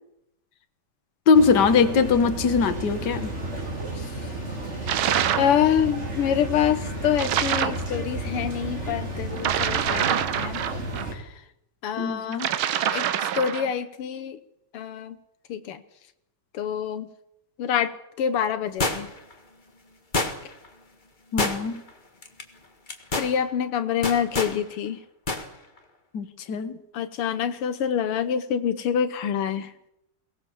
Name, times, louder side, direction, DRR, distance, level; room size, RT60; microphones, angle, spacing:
voice 1, 1.3-3.3 12.0-12.5 21.3-21.8 26.1-26.8, left 5 dB, 55° left, 10 dB, 2.0 m, -21 dB
sound 1, 1.3-11.1, right 1 dB, 30° right, 3.7 m, -33 dB
sound 2, 4.9-5.6 7.2-7.9 9.4-11.1 12.3-13.7, right 10 dB, 70° right, 1.7 m, -25 dB
voice 2, 5.4-10.6 11.1-11.3 11.8-12.5 12.9-14.4 14.7-15.2 15.5-15.8 16.5-17.1 17.6-19.1 23.2-25.0 26.9-29.7, left 8 dB, 85° left, 11 dB, 2.0 m, -26 dB
sound 3, 18.8-19.3 20.1-20.7 21.4-21.9 22.2-22.4 22.9-23.3 24.0-24.6 25.3-25.5 25.8-25.9, left 2 dB, 25° left, 1.8 m, -27 dB
22.5 x 18.5 x 7.2 m, 0.80 s
omnidirectional pair, 2.4 m